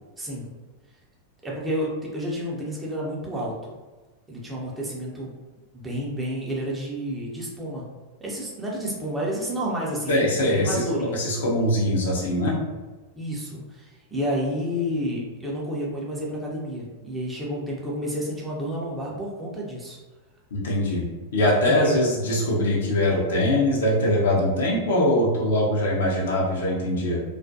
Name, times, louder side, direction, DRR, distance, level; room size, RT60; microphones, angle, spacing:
voice 1, 0.2-0.5 1.4-3.8 4.3-5.3 5.7-7.8 8.2-11.3 13.1-20.0 21.7-22.0, equal, 10° right, -5 dB, 0.6 m, -30 dB
voice 2, 10.1-10.8 11.1-12.6 20.5-27.2, left 1 dB, 60° left, -4 dB, 0.6 m, -22 dB
2.3 x 2.1 x 2.7 m, 1.3 s
figure-of-eight pair, 90°, 0 cm